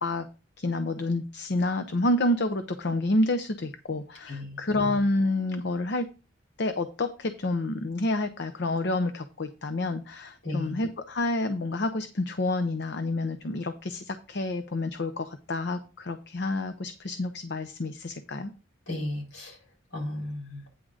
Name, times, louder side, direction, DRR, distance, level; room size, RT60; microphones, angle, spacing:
voice 1, 0.6-6.1 6.6-18.5, left 2 dB, 60° left, 9 dB, 0.7 m, -29 dB
voice 2, 4.3-4.6 10.4-10.8 18.9-19.6 19.9-20.6, left 1 dB, 85° left, 0 dB, 4.8 m, -34 dB
9.4 x 3.7 x 6.3 m, 0.33 s
head